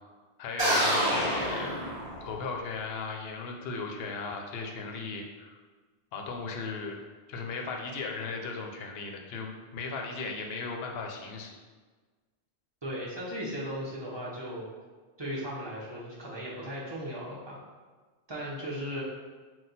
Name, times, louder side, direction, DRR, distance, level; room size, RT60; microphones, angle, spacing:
voice 1, 0.4-1.8 2.2-5.6 6.1-7.0 7.3-11.6, left 4 dB, 65° left, 2 dB, 0.8 m, -36 dB
sound 1, 0.6-2.5, equal, 55° right, 1.3 m, -27 dB
voice 2, 12.8-14.6 15.2-17.6 18.3-19.0, equal, 25° right, -6 dB, 0.8 m, -36 dB
4.1 x 2.3 x 3.9 m, 1.4 s
omnidirectional pair, 1.1 m